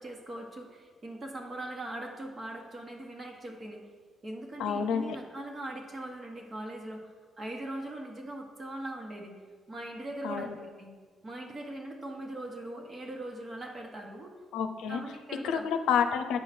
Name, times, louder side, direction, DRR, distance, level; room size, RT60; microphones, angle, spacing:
voice 1, 0.0-3.8 4.2-9.4 9.7-10.9 11.2-14.3 14.9-15.6, right 1 dB, 35° right, 2 dB, 1.5 m, -40 dB
voice 2, 4.6-5.2 10.2-10.6 14.5-15.0 15.4-16.4, left 7 dB, 85° left, 7 dB, 0.6 m, -29 dB
8.7 x 5.8 x 4.5 m, 1.5 s
cardioid pair, 90°, 0 cm